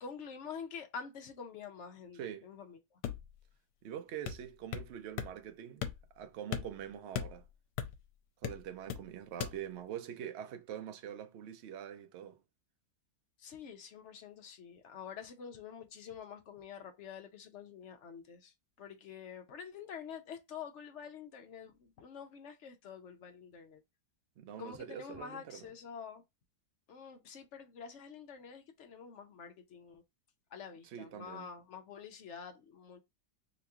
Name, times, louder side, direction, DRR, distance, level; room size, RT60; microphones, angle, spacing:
voice 1, 0.0-3.0 13.4-23.8 24.6-26.2 26.9-30.0 30.5-33.0, left 6 dB, 60° left, 0.8 m, -47 dB
voice 2, 2.1-2.5 3.8-5.9 6.2-7.4 8.4-12.4 24.4-25.7 30.8-31.5, right 9 dB, 75° right, 0.6 m, -44 dB
sound 1, 3.0-3.4 4.2-4.9 5.2-5.3 5.8-6.2 6.5-8.1 8.4-9.1 9.4-9.6, left 9 dB, 85° left, 1.2 m, -39 dB
3.0 x 2.9 x 3.4 m
omnidirectional pair, 1.8 m